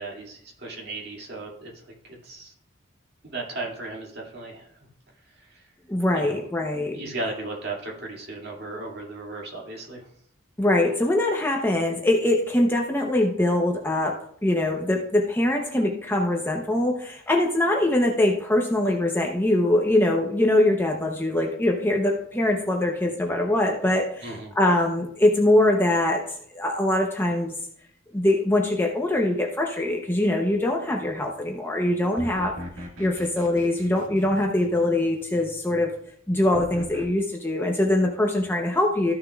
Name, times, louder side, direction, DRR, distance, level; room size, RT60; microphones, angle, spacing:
voice 1, 0.0-1.7 2.0-2.5 3.2-4.7 5.4-5.7 6.1-10.1 24.2-24.5, right 2 dB, 50° right, -2 dB, 2.3 m, -36 dB
voice 2, 5.9-7.0 10.6-26.2 26.5-27.5 28.1-32.6 33.0-35.9 36.3-39.1, left 1 dB, 10° left, 1 dB, 0.8 m, -23 dB
sound 1, 32.2-35.0 36.5-37.0, equal, 90° right, 1.6 m, -39 dB
13.5 x 6.4 x 2.4 m, 0.65 s
head